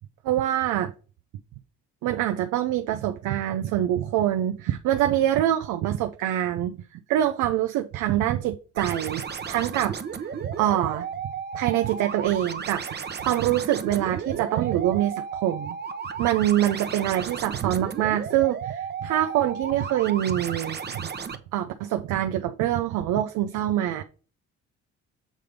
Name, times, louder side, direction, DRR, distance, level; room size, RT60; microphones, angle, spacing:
voice 1, 0.2-0.9 2.0-10.0 10.4-11.1 11.5-15.7 16.2-21.1 21.5-24.0, right 12 dB, 90° right, 0.6 m, -25 dB
sound 1, 8.8-21.4, right 6 dB, 35° right, 0.9 m, -34 dB
7.5 x 3.3 x 5.2 m
cardioid pair, 90°, 30 cm